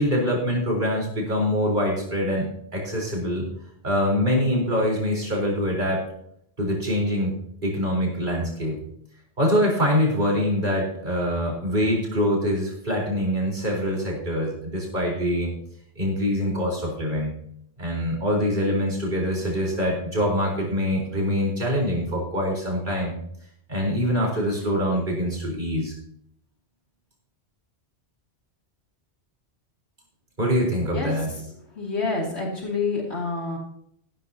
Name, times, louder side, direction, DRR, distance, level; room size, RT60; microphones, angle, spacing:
voice 1, 0.0-3.4 3.8-6.1 6.6-7.4 7.6-8.8 9.4-15.5 16.0-17.3 17.8-23.1 23.7-25.9 30.4-31.3, equal, 45° right, -3 dB, 4.6 m, -24 dB
voice 2, 31.8-33.6, left 4 dB, 75° left, -2 dB, 3.1 m, -27 dB
16.0 x 12.0 x 2.9 m, 0.70 s
omnidirectional pair, 1.1 m